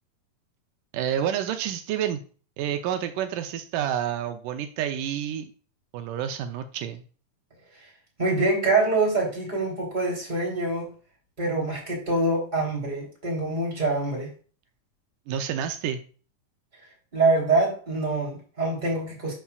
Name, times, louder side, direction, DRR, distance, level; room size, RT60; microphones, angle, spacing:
voice 1, 0.9-2.2 2.6-5.5 5.9-7.0 15.3-16.0, right 9 dB, 85° right, 7 dB, 2.3 m, -29 dB
voice 2, 8.2-10.9 11.4-14.3 17.1-19.3, right 2 dB, 15° right, -2 dB, 3.2 m, -25 dB
12.0 x 5.6 x 2.4 m, 0.39 s
omnidirectional pair, 3.7 m